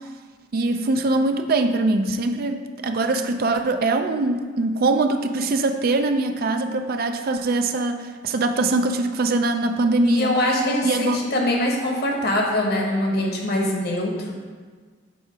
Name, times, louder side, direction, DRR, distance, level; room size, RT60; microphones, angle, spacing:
voice 1, 0.5-10.4 10.8-11.3, right 2 dB, 50° right, 7 dB, 0.4 m, -22 dB
voice 2, 10.0-14.3, left 1 dB, 55° left, 0 dB, 1.2 m, -23 dB
7.9 x 2.9 x 5.6 m, 1.5 s
head